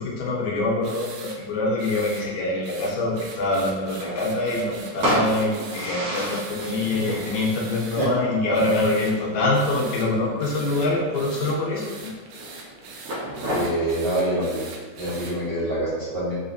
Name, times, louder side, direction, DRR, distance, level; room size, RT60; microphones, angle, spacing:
voice 1, 0.0-12.1, left 2 dB, 75° left, -3 dB, 2.1 m, -25 dB
sound 1, 0.8-1.4 1.8-2.2 2.6-8.1 8.5-9.1 9.5-10.1 10.4-15.3, right 4 dB, 80° right, 1.9 m, -41 dB
sound 2, 3.6-13.6, equal, 60° right, 1.9 m, -33 dB
voice 2, 13.2-14.6 15.0-16.3, right 1 dB, 40° right, -13 dB, 0.8 m, -26 dB
5.0 x 3.3 x 2.7 m, 1.4 s
omnidirectional pair, 3.4 m